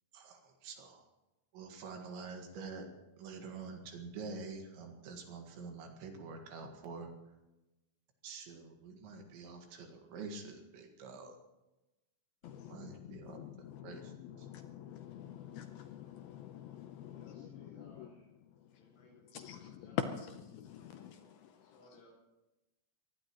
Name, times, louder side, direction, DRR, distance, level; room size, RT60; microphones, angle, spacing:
voice 1, 0.1-1.1 1.5-2.9 3.2-7.1 8.2-11.4 12.7-13.4 13.8-14.1 14.4-14.5, right 4 dB, 75° right, 3.9 m, -47 dB
voice 2, 12.4-18.1 19.3-21.8, left 9 dB, 80° left, 2.1 m, -45 dB
voice 3, 17.0-18.3 18.7-20.3 21.6-22.1, left 1 dB, 65° left, 8.5 m, -63 dB
24.0 x 19.0 x 3.1 m
omnidirectional pair, 5.3 m